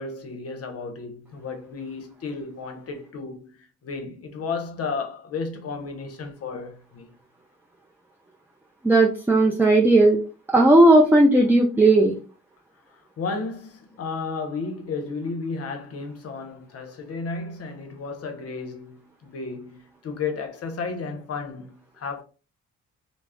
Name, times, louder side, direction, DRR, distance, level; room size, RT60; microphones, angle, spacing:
voice 1, 0.0-7.1 12.9-22.2, left 4 dB, 55° left, 0.7 m, -33 dB
voice 2, 8.8-10.2 10.5-12.2, right 2 dB, 5° right, 0.4 m, -16 dB
2.3 x 2.0 x 3.4 m
cardioid pair, 90°, 30 cm